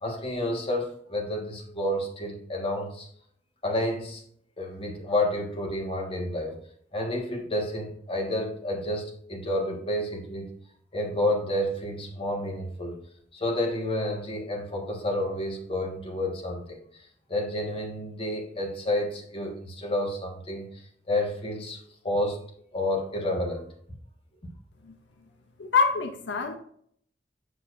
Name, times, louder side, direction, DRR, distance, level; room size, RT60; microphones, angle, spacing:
voice 1, 0.0-3.1 3.6-4.2 4.6-6.5 6.9-10.5 10.9-13.0 13.3-16.8 17.3-20.7 21.1-22.4 22.7-23.7, left 1 dB, 30° left, 0 dB, 1.4 m, -30 dB
voice 2, 25.6-26.6, left 5 dB, 85° left, 5 dB, 0.7 m, -25 dB
6.9 x 6.6 x 2.5 m, 0.63 s
head